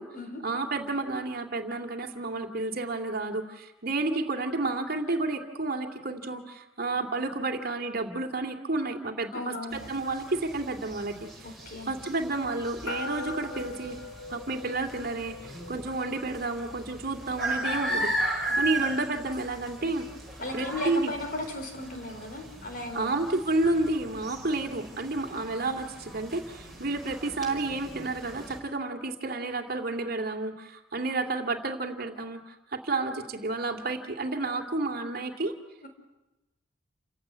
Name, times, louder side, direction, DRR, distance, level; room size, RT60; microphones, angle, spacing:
voice 1, 0.4-11.3 11.9-14.0 14.3-18.1 18.5-20.1 20.5-21.1 22.9-35.5, right 2 dB, 45° right, 5 dB, 2.4 m, -31 dB
voice 2, 9.3-9.9 11.4-11.9 18.5-18.6 20.4-23.2 26.7-26.8 35.8-35.9, left 2 dB, 45° left, 5 dB, 4.4 m, -36 dB
sound 1, 9.7-28.6, right 1 dB, ahead, 5.0 m, -37 dB
sound 2, 12.9-20.6, left 3 dB, 85° left, 4.4 m, -44 dB
29.0 x 16.5 x 9.7 m, 1.0 s
head